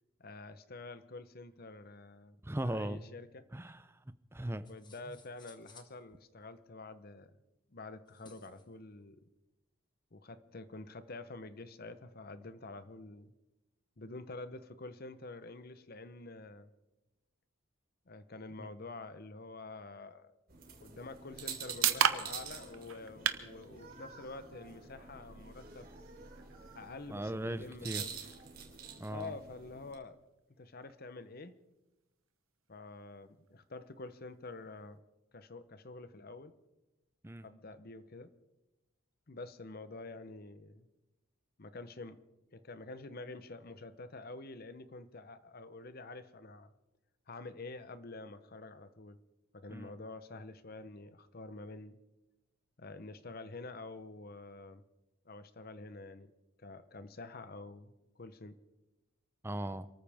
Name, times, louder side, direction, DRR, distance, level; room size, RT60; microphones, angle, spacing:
voice 1, 0.2-2.4 2.6-3.4 4.7-7.4 7.7-9.2 10.1-13.3 14.0-16.7 18.1-20.3 20.8-25.9 26.7-28.1 29.1-30.2 30.6-31.6 32.7-35.0 35.3-36.5 37.4-38.3 39.3-40.9 41.6-42.2 42.5-46.7 47.3-49.2 49.5-52.0 52.8-54.8 55.2-56.3 56.6-58.6, left 3 dB, 45° left, 12 dB, 0.8 m, -48 dB
voice 2, 2.4-3.1 3.5-4.0 4.3-4.7 5.1-5.2 18.6-18.7 27.1-28.0 29.0-29.3 37.2-37.5 49.7-49.9 59.4-59.9, right 1 dB, 10° right, 12 dB, 0.5 m, -38 dB
Shaking Beads, 4.6-6.0 8.1-8.7, left 4 dB, 20° left, 1.4 m, -60 dB
sound 1, 20.5-29.9, right 6 dB, 45° right, 3.0 m, -48 dB
sound 2, 21.1-35.0, right 8 dB, 80° right, 1.0 m, -40 dB
28.0 x 14.0 x 3.5 m, 1.0 s
head